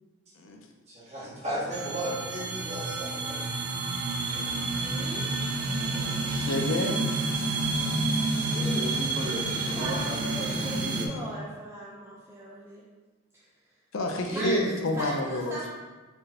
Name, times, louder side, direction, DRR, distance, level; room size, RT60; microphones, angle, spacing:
voice 1, 0.9-3.4 4.3-4.6 5.8-6.2 14.2-14.7, right 1 dB, 35° right, -8 dB, 1.4 m, -33 dB
sound 1, 1.7-11.1, right 2 dB, 85° right, 0.6 m, -29 dB
voice 2, 4.7-5.2 9.8-12.8 13.3-13.4 14.3-14.5 15.0-15.7, right 1 dB, 10° right, -5 dB, 0.4 m, -40 dB
voice 3, 6.3-7.1 13.9-15.7, left 1 dB, 75° left, 3 dB, 0.5 m, -29 dB
voice 4, 8.5-11.1, right 1 dB, 60° right, -4 dB, 0.9 m, -37 dB
4.3 x 3.2 x 2.8 m, 1.3 s
head